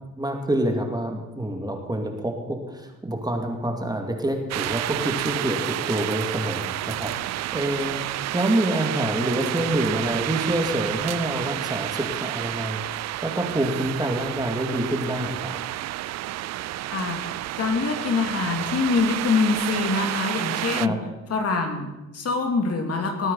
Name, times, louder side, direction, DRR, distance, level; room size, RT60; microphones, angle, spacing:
voice 1, 0.2-8.0 8.3-12.8 13.2-15.6 20.8-21.0, right 1 dB, 15° right, 3 dB, 2.5 m, -27 dB
sound 1, 4.5-20.9, right 15 dB, 60° right, 0.4 m, -30 dB
voice 2, 16.9-21.0 21.3-23.3, left 4 dB, 55° left, 4 dB, 2.7 m, -25 dB
20.0 x 9.0 x 5.6 m, 1.0 s
cardioid pair, 90°, 30 cm